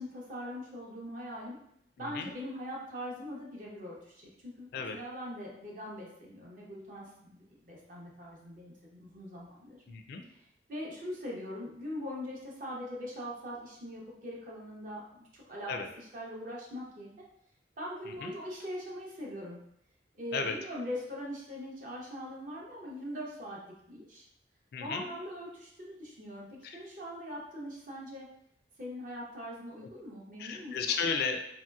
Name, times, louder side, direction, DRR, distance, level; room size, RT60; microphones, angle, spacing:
voice 1, 0.0-1.6 2.0-9.8 10.3-10.4 10.7-17.1 17.8-19.6 20.1-24.3 24.8-28.3 28.8-30.9, equal, 50° right, -3 dB, 0.7 m, -42 dB
voice 2, 2.0-2.3 4.7-5.0 9.9-10.2 15.7-15.9 18.2-18.3 20.3-20.5 24.7-25.1 26.6-26.8 30.4-31.4, left 5 dB, 60° left, 4 dB, 0.3 m, -33 dB
3.0 x 2.7 x 2.2 m, 0.74 s
head